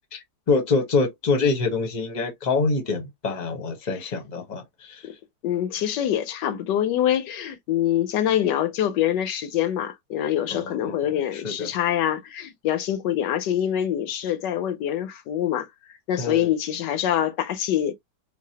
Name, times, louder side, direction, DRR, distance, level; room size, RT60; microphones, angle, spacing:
voice 1, 0.1-5.0 10.5-11.7 16.2-16.5, left 4 dB, 30° left, 1.0 m, -26 dB
voice 2, 5.4-15.7 16.1-17.9, left 11 dB, 80° left, 1.3 m, -25 dB
4.0 x 2.5 x 2.8 m
omnidirectional pair, 1.8 m